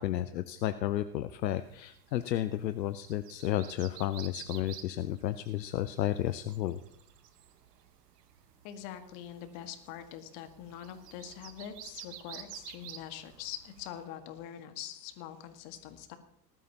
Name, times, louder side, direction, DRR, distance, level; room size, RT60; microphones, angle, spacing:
voice 1, 0.0-6.8, left 12 dB, 80° left, 12 dB, 0.7 m, -32 dB
sound 1, 1.6-14.1, right 10 dB, 70° right, 1.4 m, -51 dB
voice 2, 8.6-16.2, left 10 dB, 50° left, 8 dB, 1.9 m, -44 dB
19.5 x 12.5 x 2.9 m, 0.71 s
figure-of-eight pair, 80°, 50 cm